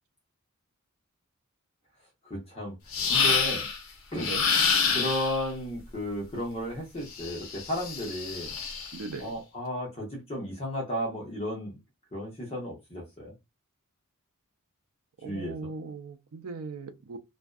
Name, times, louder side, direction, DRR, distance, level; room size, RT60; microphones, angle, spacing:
voice 1, 2.2-2.7 3.1-3.7 4.1-4.3 4.9-8.5 9.2-11.8 12.1-13.3 15.2-15.7, equal, 25° left, 0.8 m, -34 dB
sound 1, 2.9-3.8 4.2-5.4 7.1-9.0, left 5 dB, 65° left, 0.7 m, -27 dB
voice 2, 8.9-9.3 15.2-17.2, right 4 dB, 70° right, 0.5 m, -39 dB
2.5 x 2.2 x 2.2 m
head